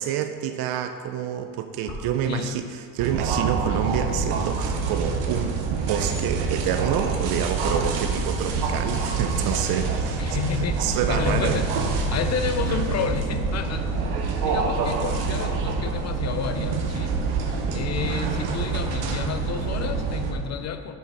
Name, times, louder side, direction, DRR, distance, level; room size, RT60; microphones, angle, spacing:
voice 1, 0.0-11.6, right 9 dB, 65° right, 7 dB, 0.5 m, -28 dB
sound 1, 1.8-2.0 3.5-3.8 4.5-4.6 5.3-5.4 6.5-6.6 7.6-7.8 8.1-8.2 9.2-9.5 11.2-11.3 12.6-13.1 14.2-14.3 15.4-15.6 16.3-16.6 17.4-17.7 18.4-18.7 19.4-19.7, left 3 dB, 70° left, 1.5 m, -42 dB
sound 2, 3.0-20.3, right 4 dB, 90° right, 0.9 m, -26 dB
voice 2, 10.0-11.8 12.1-14.1 14.4-17.2 17.7-20.9, left 7 dB, 45° left, 9 dB, 0.5 m, -30 dB
6.7 x 4.7 x 4.7 m, 2.2 s
supercardioid pair, 85°, 38 cm